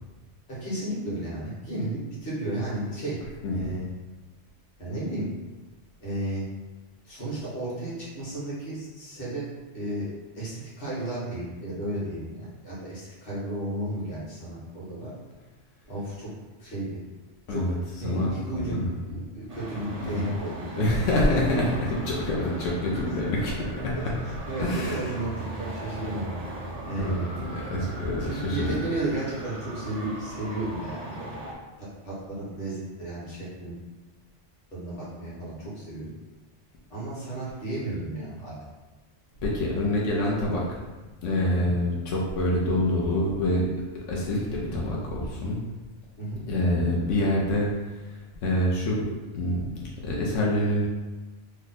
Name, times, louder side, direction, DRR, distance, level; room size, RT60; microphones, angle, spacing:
voice 1, 0.5-3.2 3.5-3.9 4.8-5.3 6.0-6.5 7.0-9.5 9.7-10.1 10.3-15.1 15.9-16.3 16.6-17.0 17.5-17.7 18.0-20.9 23.1-23.2 24.0-26.3 26.8-27.2 28.2-31.4 31.8-33.8 34.7-36.1 36.9-38.7 41.5-41.8 46.2-46.4, right 1 dB, 50° left, -7 dB, 1.3 m, -33 dB
voice 2, 18.0-18.9 20.0-20.2 20.8-23.5 23.8-23.9 24.6-25.1 27.0-28.8 39.4-40.8 41.2-43.7 44.1-45.6 46.5-48.1 48.4-49.0 49.3-50.9, left 1 dB, 90° left, -3 dB, 1.0 m, -26 dB
Traffic noise roadway noise, 19.5-31.5, right 2 dB, 50° right, 0.5 m, -38 dB
3.0 x 2.1 x 4.0 m, 1.2 s
omnidirectional pair, 1.2 m